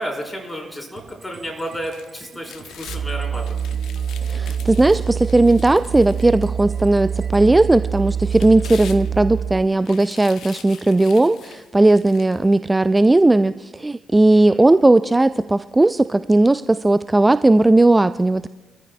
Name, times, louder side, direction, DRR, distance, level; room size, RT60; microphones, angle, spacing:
voice 1, 0.0-3.6 14.3-14.6, equal, 10° left, 0 dB, 4.4 m, -32 dB
sound 1, 1.0-8.9, right 4 dB, 35° right, 5.2 m, -47 dB
sound 2, 1.6-3.0 3.4-6.8 7.3-7.4 8.1-9.4 9.8-12.5 13.0-13.1, left 8 dB, 60° left, 0.9 m, -43 dB
Musical instrument, 2.9-9.6, right 7 dB, 60° right, 4.0 m, -26 dB
voice 2, 4.3-18.5, right 2 dB, 15° right, 14 dB, 0.3 m, -16 dB
26.0 x 14.0 x 2.3 m, 1.1 s
figure-of-eight pair, 45°, 0 cm